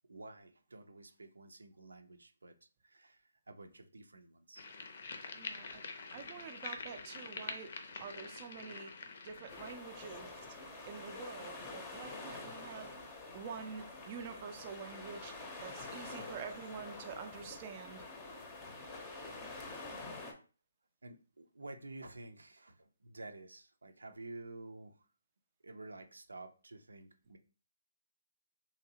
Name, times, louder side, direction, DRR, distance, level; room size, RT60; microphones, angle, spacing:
voice 1, 0.1-2.6 2.8-4.7 21.0-25.0 25.6-27.4, right 2 dB, 90° right, 0.5 m, -51 dB
sound 1, 4.6-9.7, left 4 dB, 55° left, 0.6 m, -46 dB
voice 2, 5.3-5.8 6.1-8.9 9.2-10.4 10.9-12.9 13.3-18.0, right 6 dB, 30° right, 0.4 m, -47 dB
sound 2, 9.5-20.3, left 3 dB, 15° left, 0.6 m, -47 dB
3.1 x 2.7 x 2.8 m
hypercardioid pair, 155°, 0 cm